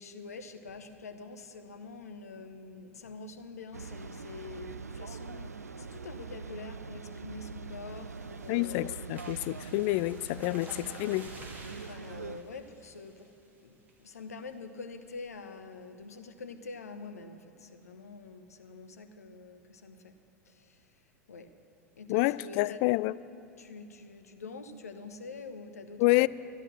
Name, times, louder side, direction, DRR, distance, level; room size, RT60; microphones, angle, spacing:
voice 1, 0.0-9.1 10.5-11.0 11.7-13.3 13.6-20.2 20.4-21.5 22.0-22.8 23.6-26.3, left 4 dB, 80° left, 0.9 m, -46 dB
sound 1, 3.7-12.4, right 5 dB, 90° right, 0.4 m, -43 dB
sound 2, 7.7-13.5 13.9-14.2 14.5-14.6 14.9-15.2, right 2 dB, 20° right, 2.6 m, -52 dB
voice 2, 8.5-11.3 22.1-23.1 26.0-26.3, left 20 dB, 50° left, 0.3 m, -28 dB
12.5 x 12.5 x 6.1 m
figure-of-eight pair, 85°, 8 cm